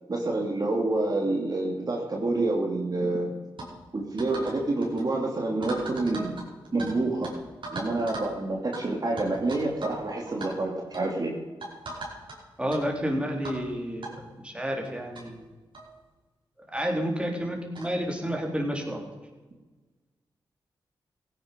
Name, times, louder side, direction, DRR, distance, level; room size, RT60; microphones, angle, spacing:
voice 1, 0.1-3.3 3.9-6.4 6.7-7.3 7.7-11.3, right 2 dB, 45° right, 0 dB, 2.6 m, -28 dB
sound 1, 3.6-3.7 4.2-4.6 4.8-5.0 5.6-6.9 7.2-7.3 7.6-8.3 8.7-8.8 9.2-10.0 10.3-10.5 10.9-11.1 11.6-12.4 12.7-12.8 13.4-13.6 14.0-14.1 14.8-14.9 15.1-15.2 15.7-15.9 16.8-16.9 17.7-17.9, right 2 dB, 60° right, 5.1 m, -38 dB
voice 2, 12.6-15.5 16.7-19.0, equal, 10° right, 1 dB, 3.7 m, -30 dB
16.5 x 10.0 x 5.2 m, 1.3 s
cardioid pair, 50°, 9 cm